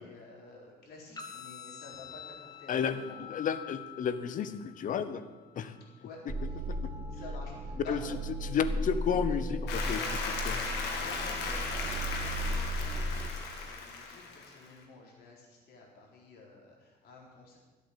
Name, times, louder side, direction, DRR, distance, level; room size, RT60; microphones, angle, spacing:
voice 1, 0.0-3.2 6.0-6.2 6.5-6.6 7.1-8.2 11.0-17.6, left 3 dB, 70° left, -2 dB, 4.0 m, -50 dB
sound 1, 1.2-9.2, left 8 dB, 20° left, 1.6 m, -50 dB
voice 2, 2.7-5.2 5.6-5.7 6.7-6.9 7.9-8.0 8.4-10.6, left 7 dB, 50° left, 13 dB, 0.9 m, -32 dB
sound 2, 6.3-13.3, right 1 dB, 30° right, 1.0 m, -35 dB
Applause, 9.7-14.7, left 4 dB, 90° left, 2.1 m, -36 dB
13.0 x 8.3 x 7.4 m, 1.3 s
cardioid pair, 110°, 17 cm